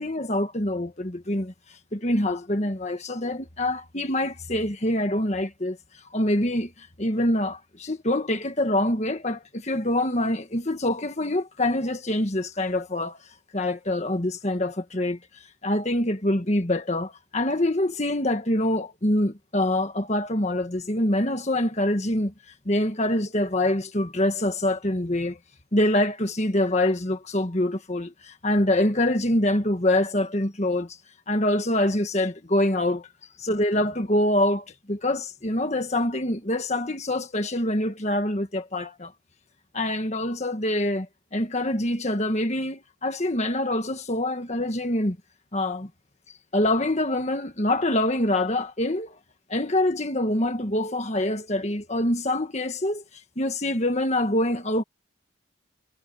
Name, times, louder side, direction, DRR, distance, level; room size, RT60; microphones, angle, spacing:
voice 1, 0.0-1.5 1.9-5.8 6.1-13.2 13.5-22.3 22.6-25.4 25.7-31.0 31.3-33.1 33.4-39.1 39.7-45.2 45.5-45.9 46.5-49.1 49.5-53.0 53.4-54.8, left 1 dB, 35° left, 1.6 m, -25 dB
head